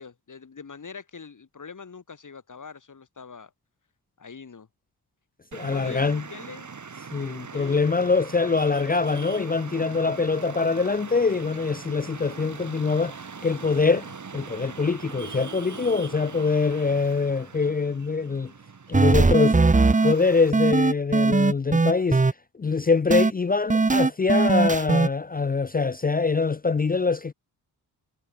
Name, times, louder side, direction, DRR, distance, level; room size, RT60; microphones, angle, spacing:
voice 1, 0.0-3.5 4.2-4.7 5.7-6.7 7.5-7.8, left 5 dB, 50° left, 4.4 m, -42 dB
voice 2, 5.5-6.2 7.1-13.1 13.4-14.1 14.3-18.5 18.9-19.6 20.0-22.2 22.6-27.3, left 4 dB, 25° left, 0.5 m, -24 dB
Traffic noise roadway noise, 5.5-20.5, right 5 dB, 50° right, 3.3 m, -41 dB
sound 1, 18.9-20.1 20.5-22.3 23.1-23.3 23.7-25.1, right 3 dB, 20° right, 1.0 m, -19 dB
cardioid pair, 70°, 38 cm